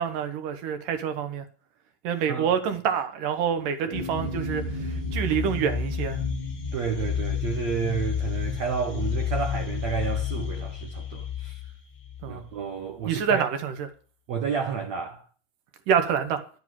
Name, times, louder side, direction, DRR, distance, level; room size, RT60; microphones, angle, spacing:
voice 1, 0.0-1.4 2.0-6.2 12.2-12.4 13.1-13.9 15.9-16.4, right 7 dB, 65° right, 2.5 m, -27 dB
sound 1, 3.9-12.5, left 6 dB, 40° left, 1.6 m, -31 dB
voice 2, 6.7-11.6 12.3-13.5 14.3-15.2, right 6 dB, 85° right, 1.5 m, -31 dB
11.5 x 7.5 x 7.6 m
omnidirectional pair, 4.8 m